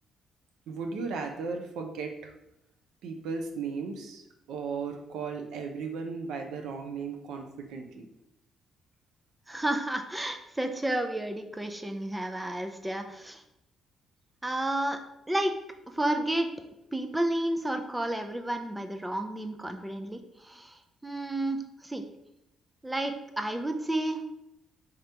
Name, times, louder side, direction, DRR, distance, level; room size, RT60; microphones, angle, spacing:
voice 1, 0.7-2.3 3.0-4.2 4.5-8.1, right 5 dB, 85° right, 4 dB, 0.6 m, -36 dB
voice 2, 9.5-13.4 14.4-15.0 15.3-15.6 15.9-16.5 16.9-22.0 22.8-24.2, right 1 dB, 10° right, 6 dB, 0.4 m, -31 dB
4.9 x 2.9 x 3.3 m, 0.85 s
cardioid pair, 90°, 0 cm